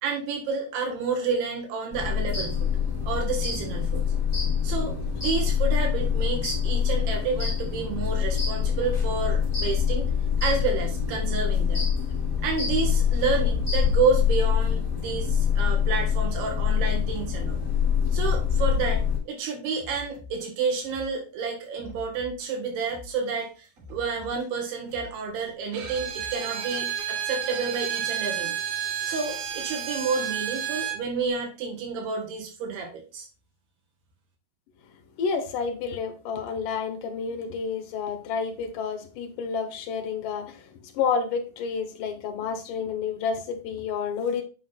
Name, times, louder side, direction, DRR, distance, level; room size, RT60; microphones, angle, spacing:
voice 1, 0.0-2.7 3.0-4.0 4.6-10.1 10.4-11.8 12.4-17.6 18.1-19.0 19.3-28.6 29.0-33.3, right 4 dB, 90° right, 1 dB, 3.5 m, -30 dB
sound 1, 1.9-19.2, left 7 dB, 5° left, 2.1 m, -25 dB
sound 2, 18.9-26.7, left 3 dB, 45° right, 4.7 m, -46 dB
Bowed string instrument, 25.7-31.0, right 9 dB, 75° right, 2.7 m, -31 dB
voice 2, 35.2-44.4, left 6 dB, 70° left, 5 dB, 2.2 m, -30 dB
8.6 x 5.6 x 2.3 m, 0.34 s
omnidirectional pair, 4.4 m